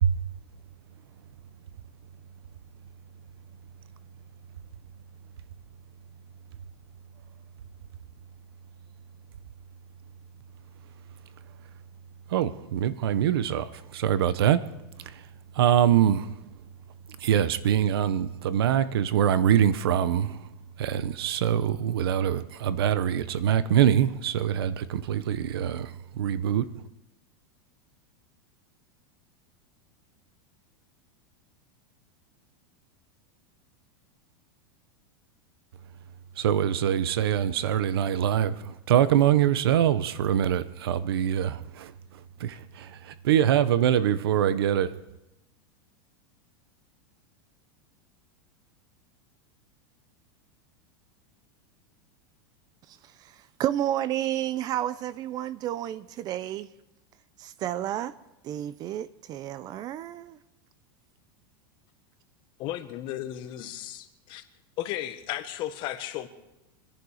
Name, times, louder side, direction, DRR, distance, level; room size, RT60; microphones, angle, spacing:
voice 1, 12.3-14.7 15.6-16.3 17.2-20.4 20.8-26.8 36.4-41.9 42.4-45.0, right 10 dB, 85° right, 1.0 m, -24 dB
voice 2, 52.9-56.7 57.4-58.1 58.4-60.4, right 12 dB, 30° right, 0.6 m, -31 dB
voice 3, 62.6-64.4 64.8-66.3, left 13 dB, 40° left, 1.4 m, -34 dB
26.5 x 10.5 x 5.0 m
supercardioid pair, 150°, 12 cm